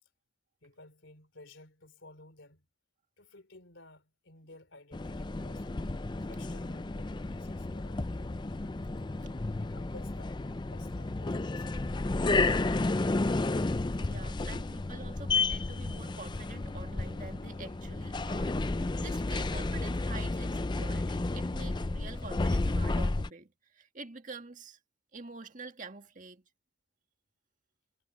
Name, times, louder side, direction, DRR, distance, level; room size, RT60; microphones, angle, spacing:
voice 1, 0.6-2.7 3.2-5.7 6.3-8.5 9.6-10.4 10.7-11.9 14.5-14.7, left 2 dB, 75° left, 3.2 m, -55 dB
sound 1, 4.9-23.3, left 2 dB, 25° left, 0.4 m, -32 dB
voice 2, 14.0-24.8 25.1-26.4, right 3 dB, 40° right, 1.9 m, -47 dB
head